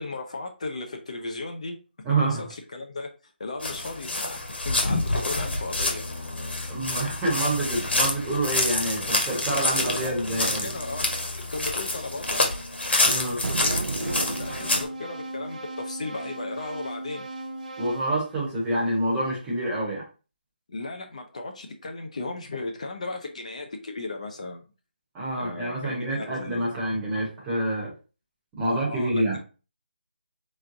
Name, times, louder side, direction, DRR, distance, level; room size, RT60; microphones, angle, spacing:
voice 1, 0.0-1.8 2.1-4.4 4.6-6.0 10.0-11.2 11.5-12.4 13.0-17.3 20.7-24.6 25.4-26.7 28.6-29.4, left 3 dB, 40° left, 4 dB, 0.6 m, -36 dB
voice 2, 2.0-2.4 6.7-10.7 13.0-13.4 17.8-20.0 25.1-27.9 28.6-29.4, right 1 dB, 10° right, -5 dB, 0.9 m, -27 dB
sound 1, 3.6-14.8, left 2 dB, 85° left, 1.6 m, -27 dB
sound 2, 13.4-15.2, right 4 dB, 75° right, 0.4 m, -33 dB
sound 3, 14.0-19.1, right 2 dB, 45° right, 0.7 m, -38 dB
3.5 x 3.2 x 3.7 m, 0.34 s
figure-of-eight pair, 175°, 6 cm